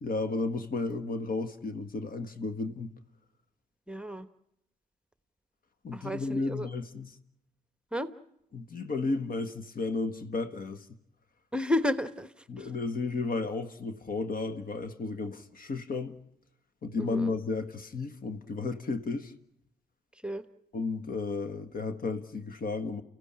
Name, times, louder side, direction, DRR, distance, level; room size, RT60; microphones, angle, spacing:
voice 1, 0.0-2.9 5.8-7.1 8.5-10.9 12.5-16.2 16.8-19.3 20.7-23.0, left 3 dB, 50° left, 1.5 m, -33 dB
voice 2, 3.9-4.3 5.9-6.7 7.9-8.1 11.5-12.7 17.0-17.3 20.2-20.4, left 1 dB, 5° right, 1.1 m, -32 dB
29.5 x 15.5 x 8.8 m
supercardioid pair, 55°, 19 cm